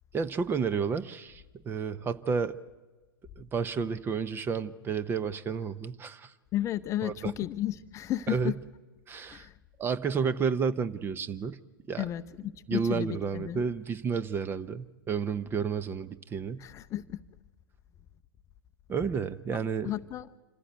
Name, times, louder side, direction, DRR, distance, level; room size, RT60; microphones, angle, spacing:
voice 1, 0.1-2.6 3.4-6.3 7.0-7.3 8.3-8.5 9.1-9.5 9.8-11.6 11.9-12.0 12.7-16.7 18.9-19.9, right 6 dB, 20° right, 15 dB, 0.7 m, -31 dB
voice 2, 6.5-8.5 9.3-9.5 12.0-13.6 16.6-17.2 19.8-20.3, left 13 dB, 25° left, 13 dB, 0.6 m, -33 dB
26.5 x 15.0 x 8.1 m, 1.2 s
figure-of-eight pair, 105°, 12 cm